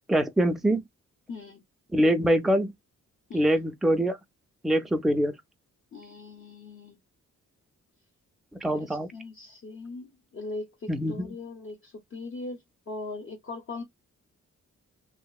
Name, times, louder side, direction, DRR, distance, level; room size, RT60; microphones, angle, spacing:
voice 1, 0.1-0.8 1.9-2.7 3.3-4.2 4.6-5.4 8.5-9.1 10.9-11.3, right 1 dB, ahead, 0.4 m, -24 dB
voice 2, 1.3-1.6 3.3-3.6 5.9-7.0 8.6-13.8, left 3 dB, 45° left, 0.7 m, -40 dB
2.8 x 2.0 x 2.3 m
wide cardioid pair, 135°, 30 cm